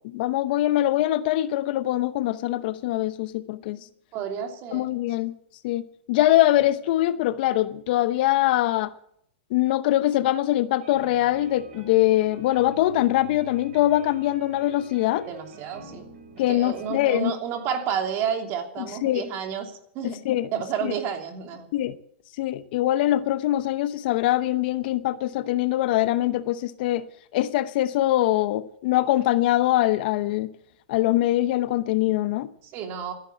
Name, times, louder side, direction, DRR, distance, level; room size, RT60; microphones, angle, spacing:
voice 1, 0.1-3.8 4.7-5.3 5.6-8.9 9.5-15.3 16.4-17.3 18.8-19.3 20.0-20.5 20.8-20.9 21.7-22.0 22.4-27.0 27.3-30.5 30.9-32.5, left 14 dB, 55° left, 0.8 m, -23 dB
voice 2, 4.1-4.9 15.3-16.1 16.5-20.2 20.5-21.7 32.6-33.1, right 7 dB, 40° right, 2.9 m, -30 dB
sound 1, 10.8-16.9, right 1 dB, 70° right, 6.6 m, -45 dB
14.0 x 10.5 x 8.5 m
hypercardioid pair, 135°, 6 cm